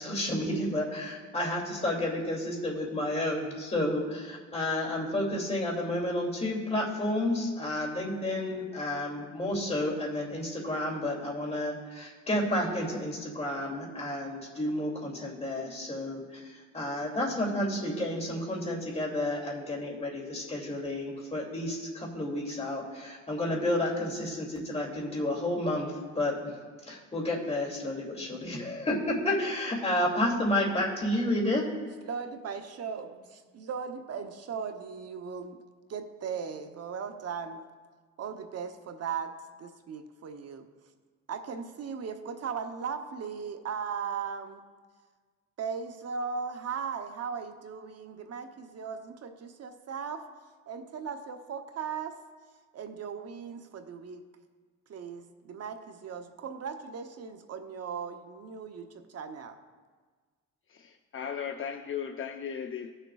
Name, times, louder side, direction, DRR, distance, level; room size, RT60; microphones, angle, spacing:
voice 1, 0.0-26.5 26.9-31.7, left 1 dB, 20° left, -2 dB, 2.5 m, -31 dB
voice 2, 32.0-35.6 35.9-37.6 38.2-39.3 39.6-40.7 41.3-44.6 45.6-50.2 50.7-52.2 52.7-54.3 54.9-59.6, right 6 dB, 55° right, 7 dB, 0.8 m, -38 dB
voice 3, 60.7-62.9, left 7 dB, 45° left, 5 dB, 0.6 m, -36 dB
19.0 x 6.6 x 2.3 m, 1.5 s
cardioid pair, 90°, 30 cm